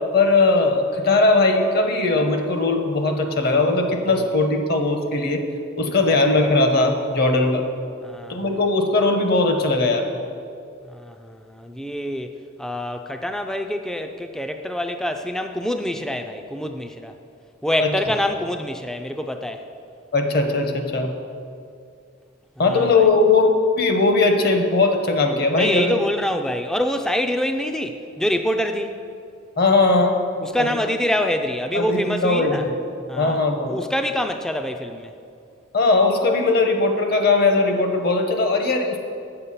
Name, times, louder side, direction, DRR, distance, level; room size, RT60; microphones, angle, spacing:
voice 1, 0.1-5.4 5.8-7.6 8.3-10.1 17.8-17.9 20.1-21.1 22.6-23.5 23.8-26.0 29.6-30.2 30.6-30.7 31.7-32.8 33.2-33.8 35.7-39.0, left 3 dB, 50° left, 5 dB, 0.9 m, -19 dB
voice 2, 8.0-8.6 10.9-12.3 12.6-17.1 17.6-19.6 22.6-23.1 25.6-28.9 30.4-32.6 33.1-33.4 33.7-35.1, left 1 dB, 5° left, 6 dB, 0.3 m, -26 dB
8.0 x 6.8 x 5.6 m, 2.4 s
head